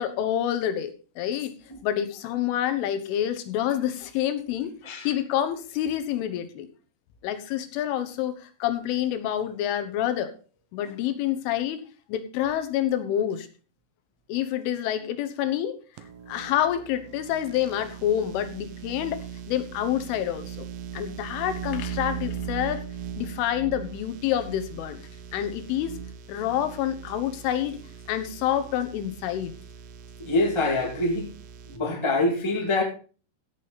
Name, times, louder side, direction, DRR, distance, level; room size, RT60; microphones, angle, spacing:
voice 1, 0.0-1.5 1.8-4.7 5.1-6.7 7.2-10.3 10.7-11.8 12.1-13.5 14.3-15.8 16.3-20.7 20.9-22.9 23.2-25.0 25.3-26.0 26.3-27.8 28.1-29.5, left 11 dB, 80° left, 10 dB, 3.6 m, -27 dB
sound 1, 16.0-31.8, right 8 dB, 75° right, 2.2 m, -39 dB
voice 2, 30.2-31.3 31.7-32.8, left 2 dB, 50° left, 2 dB, 0.3 m, -25 dB
16.5 x 7.2 x 4.1 m, 0.37 s
omnidirectional pair, 5.6 m